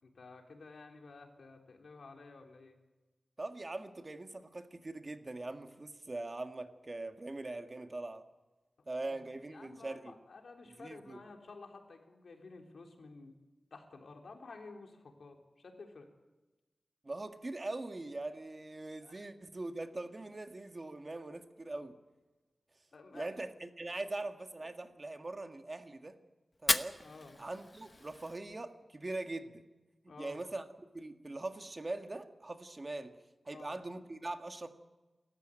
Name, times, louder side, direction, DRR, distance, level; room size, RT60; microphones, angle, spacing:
voice 1, 0.0-2.8 9.0-9.2 9.5-13.3 13.7-16.1 19.0-19.2 22.9-23.3 24.6-24.7 27.0-27.4 30.1-30.4 33.5-33.8, left 3 dB, 80° left, 3 dB, 3.4 m, -52 dB
voice 2, 3.4-8.2 8.9-10.1 10.7-11.2 17.0-21.9 23.1-26.2 26.6-27.0 27.4-29.6 30.2-30.6 30.9-33.2 33.5-34.7, right 2 dB, 35° right, 7 dB, 1.7 m, -42 dB
Fire, 26.5-28.5, left 2 dB, 35° left, 1.0 m, -35 dB
28.5 x 14.0 x 9.0 m, 1.2 s
wide cardioid pair, 90°, 0 cm